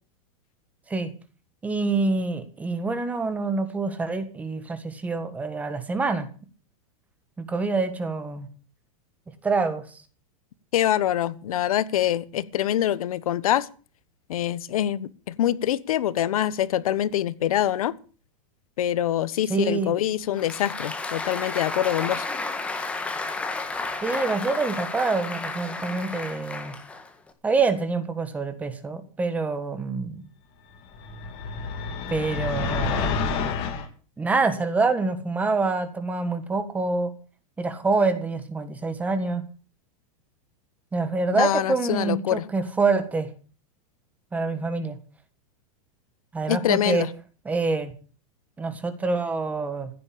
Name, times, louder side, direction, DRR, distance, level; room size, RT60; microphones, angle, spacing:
voice 1, 1.6-6.3 7.4-8.5 9.4-10.0 19.5-19.9 24.0-26.8 27.4-30.3 32.1-33.2 34.2-37.1 37.6-39.4 40.9-43.3 44.3-45.0 46.3-47.1 47.4-47.9 48.6-49.9, right 3 dB, 10° right, 10 dB, 1.6 m, -26 dB
voice 2, 10.7-13.7 14.3-17.9 18.8-22.3 41.4-42.4 46.5-47.1, left 11 dB, 90° left, 17 dB, 1.3 m, -25 dB
Applause, 20.2-27.3, left 3 dB, 5° left, 1.7 m, -32 dB
sound 1, 30.9-33.9, left 5 dB, 30° left, 3.2 m, -28 dB
15.5 x 9.7 x 8.6 m, 0.39 s
supercardioid pair, 170°, 18 cm